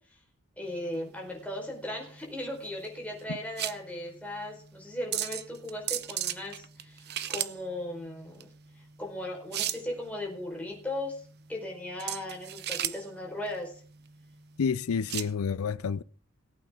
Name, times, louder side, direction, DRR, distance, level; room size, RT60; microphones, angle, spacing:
voice 1, 0.6-8.5 9.0-13.8, left 1 dB, 5° left, 4.7 m, -37 dB
sound 1, 0.6-15.3, right 12 dB, 50° right, 0.7 m, -37 dB
voice 2, 14.6-16.0, left 6 dB, 90° left, 0.5 m, -29 dB
18.5 x 8.8 x 3.7 m
head